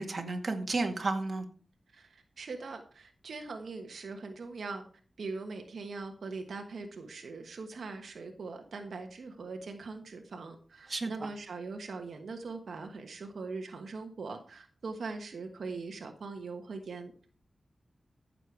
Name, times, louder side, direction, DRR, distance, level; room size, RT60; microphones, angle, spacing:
voice 1, 0.0-1.5 10.9-11.3, right 3 dB, 45° right, 4 dB, 1.9 m, -32 dB
voice 2, 1.9-4.8 5.2-17.3, right 4 dB, 80° right, 5 dB, 1.3 m, -41 dB
14.5 x 6.8 x 4.7 m, 0.42 s
wide cardioid pair, 90°, 0 cm